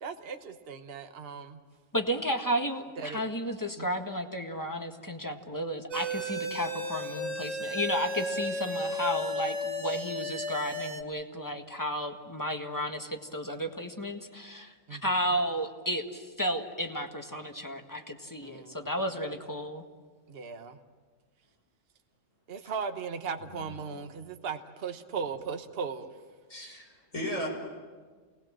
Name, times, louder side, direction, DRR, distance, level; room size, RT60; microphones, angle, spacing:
voice 1, 0.0-1.6 3.0-3.2 3.8-3.9 14.9-15.0 18.4-18.9 20.3-20.8 22.5-26.1, right 6 dB, 50° right, 7 dB, 1.3 m, -37 dB
voice 2, 1.9-19.8, equal, 15° left, 4 dB, 1.6 m, -33 dB
sound 1, 5.9-11.0, right 1 dB, 75° right, 2.3 m, -34 dB
voice 3, 26.5-27.5, equal, 85° left, -1 dB, 6.3 m, -36 dB
28.5 x 19.5 x 7.5 m, 1.5 s
omnidirectional pair, 1.3 m